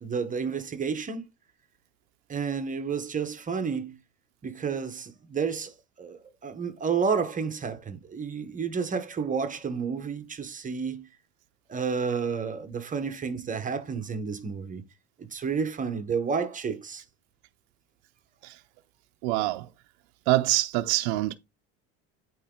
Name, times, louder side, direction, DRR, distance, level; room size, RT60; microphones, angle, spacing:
voice 1, 0.0-1.3 2.3-4.0 4.4-11.1 11.7-14.8 15.2-17.0, right 5 dB, 25° right, 0.9 m, -31 dB
voice 2, 19.2-19.7 20.3-21.4, right 18 dB, 90° right, 0.5 m, -25 dB
8.5 x 3.1 x 3.7 m
cardioid pair, 120°, 32 cm